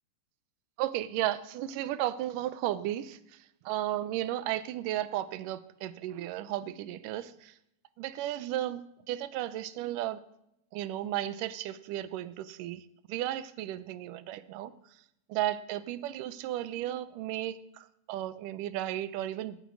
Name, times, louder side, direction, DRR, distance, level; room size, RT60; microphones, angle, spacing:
voice 1, 0.8-7.5 8.0-8.8 9.1-10.2 10.7-14.7 15.3-19.6, right 13 dB, 75° right, 15 dB, 2.2 m, -34 dB
17.0 x 8.3 x 9.5 m, 0.82 s
omnidirectional pair, 4.1 m